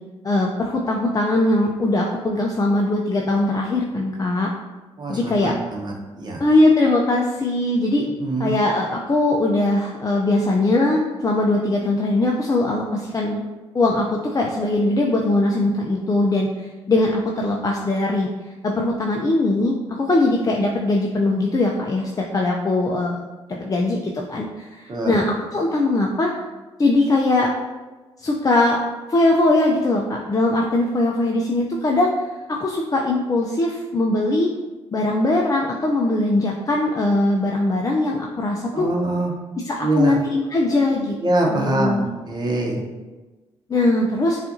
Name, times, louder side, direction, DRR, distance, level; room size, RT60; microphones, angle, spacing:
voice 1, 0.2-4.5 5.1-5.5 6.4-8.0 8.4-13.4 13.7-18.3 18.6-26.3 26.8-27.5 28.2-28.8 29.1-32.1 32.5-34.5 34.9-38.9 39.6-41.2 41.5-42.1 43.7-44.4, left 2 dB, 30° left, -1 dB, 0.5 m, -20 dB
voice 2, 5.0-6.4 8.2-8.5 24.9-25.2 38.7-39.3 39.8-40.2 41.2-42.8, right 2 dB, 40° right, 0 dB, 0.9 m, -24 dB
5.5 x 2.5 x 2.6 m, 1.2 s
supercardioid pair, 60°, 11 cm